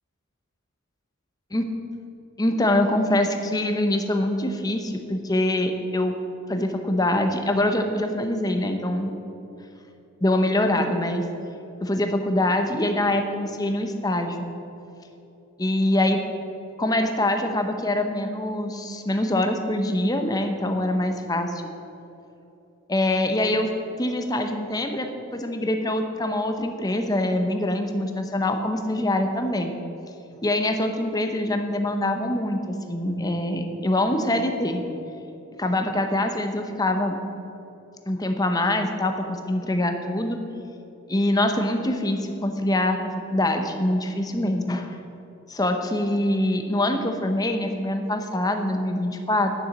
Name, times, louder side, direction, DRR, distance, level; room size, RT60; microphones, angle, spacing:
voice 1, 2.4-6.2 6.5-9.1 10.2-11.2 11.8-14.5 15.6-16.2 16.8-21.6 22.9-23.7 24.0-29.7 30.4-34.8 35.6-37.2 38.1-40.4 41.1-45.0 45.5-49.5, left 1 dB, 15° left, 5 dB, 0.7 m, -24 dB
9.6 x 6.9 x 7.1 m, 2.9 s
head